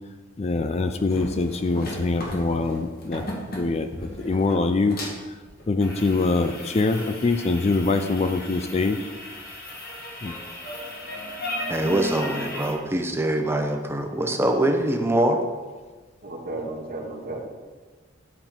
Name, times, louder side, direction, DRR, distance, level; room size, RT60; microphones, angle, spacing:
voice 1, 0.4-3.2 3.5-5.0 5.7-9.0 10.2-10.3, left 3 dB, 35° left, 8 dB, 0.4 m, -24 dB
sound 1, 1.0-12.7, left 1 dB, 50° left, 1.9 m, -36 dB
voice 2, 11.7-15.4, right 1 dB, 15° right, 4 dB, 0.8 m, -23 dB
voice 3, 16.2-17.5, right 2 dB, 50° right, 1 dB, 1.4 m, -33 dB
10.0 x 5.5 x 4.5 m, 1.3 s
head